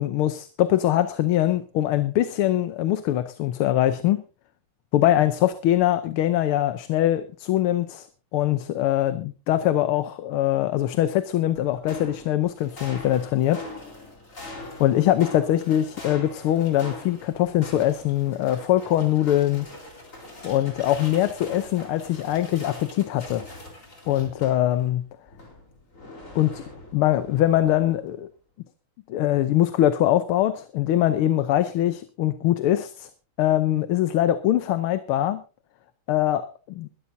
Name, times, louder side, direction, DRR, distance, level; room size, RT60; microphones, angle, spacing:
voice 1, 0.0-4.2 4.9-8.1 8.3-13.7 14.8-19.7 20.4-23.4 24.1-25.0 26.3-26.6 26.9-28.3 29.1-33.1 33.4-35.4 36.1-36.9, left 13 dB, 90° left, 11 dB, 1.7 m, -22 dB
sound 1, 11.5-24.9 25.3-28.0, left 2 dB, 35° left, 4.3 m, -42 dB
21.0 x 13.0 x 2.7 m, 0.33 s
omnidirectional pair, 2.3 m